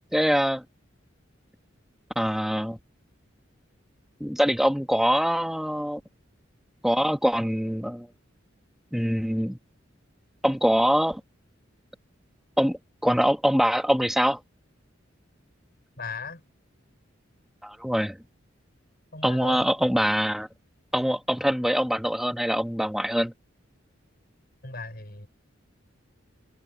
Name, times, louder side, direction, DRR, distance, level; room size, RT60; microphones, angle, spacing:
voice 1, 0.1-0.6 2.1-2.8 4.2-6.0 6.8-8.1 8.9-9.6 10.4-11.2 12.6-14.4 17.6-18.2 19.2-20.5 20.9-23.3, equal, ahead, 1.5 m, -24 dB
voice 2, 16.0-16.4 19.1-19.7 24.6-25.3, left 4 dB, 50° left, 5.3 m, -37 dB
head